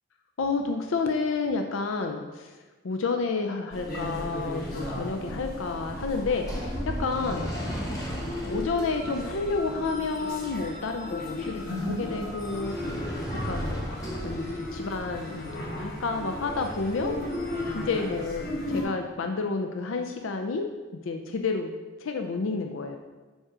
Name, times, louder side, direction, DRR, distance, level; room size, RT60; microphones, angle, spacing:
voice 1, 0.4-2.5 2.8-7.8 8.4-12.7 13.0-13.2 13.5-17.2 17.7-20.7 21.0-21.7 22.0-23.0, left 4 dB, 80° left, 4 dB, 0.5 m, -30 dB
sound 1, 3.7-18.8, left 1 dB, 45° left, 1.2 m, -35 dB
sound 2, 5.3-18.4, equal, 15° left, 1.0 m, -40 dB
5.3 x 4.9 x 5.9 m, 1.3 s
head